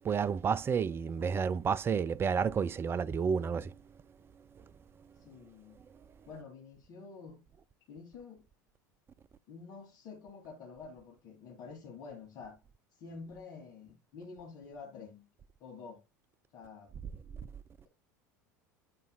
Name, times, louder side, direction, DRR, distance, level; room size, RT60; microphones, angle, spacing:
voice 1, 0.0-3.8 4.5-4.6 17.3-17.5, right 6 dB, 25° right, 0.4 m, -31 dB
voice 2, 5.2-5.8 6.3-7.4 7.9-8.4 9.5-12.6 13.0-15.3 15.6-16.0 16.5-16.9, left 5 dB, 45° left, 2.4 m, -48 dB
9.6 x 5.3 x 2.3 m
figure-of-eight pair, 80°, 10 cm